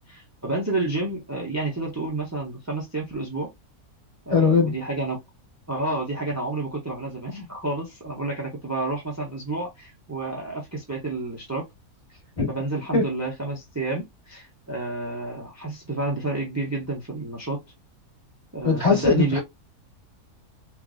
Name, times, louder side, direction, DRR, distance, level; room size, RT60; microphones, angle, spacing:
voice 1, 0.1-3.5 4.3-5.2 5.7-11.7 12.5-17.6 18.5-19.4, right 2 dB, 25° right, 0.3 m, -30 dB
voice 2, 4.3-4.7 12.4-12.5 12.9-13.0 18.6-19.4, left 4 dB, 30° left, 1.7 m, -20 dB
3.2 x 2.4 x 2.5 m
omnidirectional pair, 1.7 m